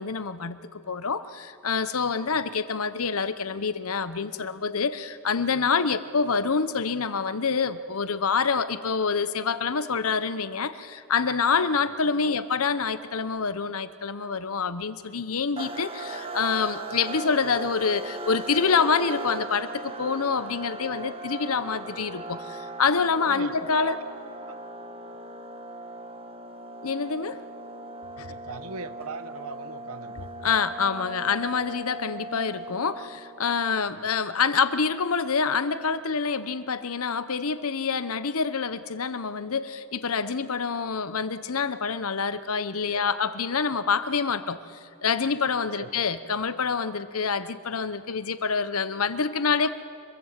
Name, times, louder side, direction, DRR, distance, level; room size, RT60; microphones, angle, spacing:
voice 1, 0.0-24.0 26.8-27.4 28.2-28.3 30.4-44.6 45.0-49.7, left 5 dB, 70° left, 13 dB, 0.9 m, -26 dB
voice 2, 11.8-12.4 23.3-24.0 24.5-24.6 28.2-30.2 33.9-34.1 42.9-43.0 45.8-45.9, right 3 dB, 70° right, 12 dB, 1.1 m, -40 dB
sound 1, 15.6-33.4, right 2 dB, 25° right, 1.6 m, -38 dB
25.0 x 23.0 x 7.5 m, 2.6 s
head